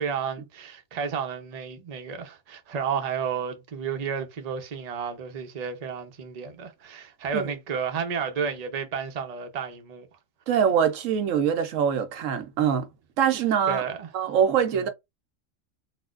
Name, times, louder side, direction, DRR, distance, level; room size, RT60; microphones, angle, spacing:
voice 1, 0.0-10.1 13.7-14.1 14.7-14.9, right 6 dB, 40° right, 0.7 m, -32 dB
voice 2, 10.5-12.9 13.2-13.8 14.1-14.9, right 8 dB, 75° right, 1.0 m, -23 dB
4.1 x 2.2 x 2.4 m
omnidirectional pair, 1.4 m